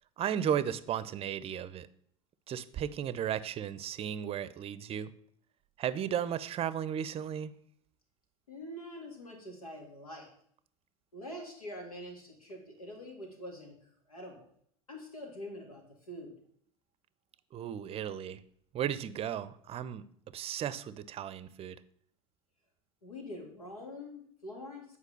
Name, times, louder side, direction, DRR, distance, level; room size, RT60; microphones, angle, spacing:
voice 1, 0.2-1.9 2.5-5.1 5.8-7.5 17.5-18.4 18.7-20.0 20.3-21.8, right 9 dB, 35° right, 16 dB, 0.6 m, -35 dB
voice 2, 8.5-10.3 11.1-14.5 14.9-16.3 23.0-24.9, left 1 dB, 90° left, 2 dB, 2.3 m, -45 dB
8.2 x 4.8 x 6.5 m, 0.64 s
hypercardioid pair, 80°, 18 cm